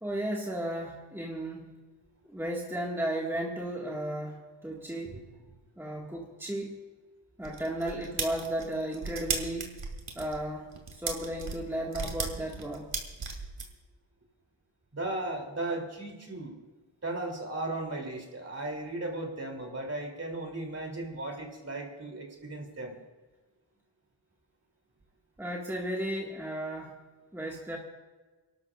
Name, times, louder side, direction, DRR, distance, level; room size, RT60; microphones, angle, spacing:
voice 1, 0.0-1.7 2.3-5.2 5.8-6.8 7.4-9.8 10.2-12.9 25.4-27.0 27.3-27.8, right 1 dB, 5° right, -3 dB, 1.8 m, -34 dB
sound 1, 7.4-13.7, right 4 dB, 70° right, 2.5 m, -35 dB
voice 2, 14.9-16.6 17.0-22.9, right 2 dB, 35° right, 2 dB, 3.0 m, -36 dB
30.0 x 12.5 x 2.4 m, 1.3 s
wide cardioid pair, 150°, 46 cm